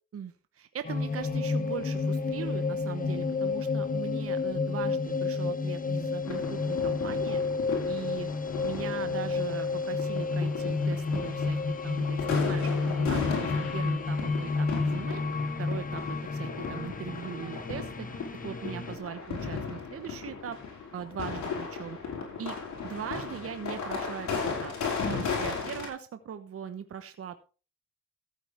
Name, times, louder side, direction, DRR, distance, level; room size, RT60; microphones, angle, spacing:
voice 1, 0.1-7.4 7.9-8.3 8.6-16.0 16.3-18.1 18.4-20.6 20.9-22.0 22.4-22.6 22.8-24.7 25.1-27.4, right 8 dB, 50° right, 9 dB, 1.2 m, -40 dB
sound 1, 0.8-19.0, left 4 dB, 25° left, 1.2 m, -30 dB
sound 2, 6.2-25.9, left 5 dB, 65° left, 5.5 m, -36 dB
14.5 x 8.9 x 3.6 m, 0.35 s
cardioid pair, 90°, 30 cm